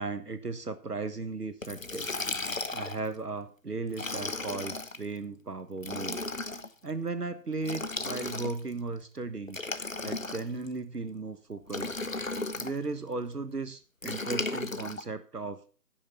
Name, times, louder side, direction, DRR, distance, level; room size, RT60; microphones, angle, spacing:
voice 1, 0.0-2.1 2.7-6.2 6.8-9.6 10.0-12.0 12.6-15.6, right 3 dB, 70° right, 11 dB, 1.3 m, -36 dB
Liquid, 1.6-3.1 3.9-5.0 5.8-6.7 7.6-8.7 9.5-10.7 11.7-12.7 14.0-15.0, left 3 dB, 50° left, 1.0 m, -35 dB
15.0 x 6.7 x 5.6 m, 0.38 s
figure-of-eight pair, 180°, 50 cm